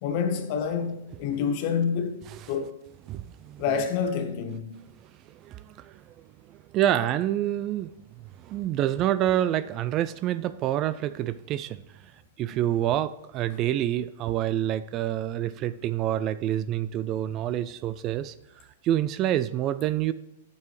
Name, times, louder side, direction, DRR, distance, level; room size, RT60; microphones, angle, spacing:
voice 1, 0.0-2.7 3.6-4.7 13.5-13.6, left 6 dB, 50° left, 1.1 m, -28 dB
voice 2, 3.1-3.6 5.3-7.9 8.4-12.1 12.4-18.3 18.8-20.1, right 12 dB, 35° right, 0.3 m, -27 dB
9.3 x 6.9 x 3.2 m
hypercardioid pair, 125°, 0 cm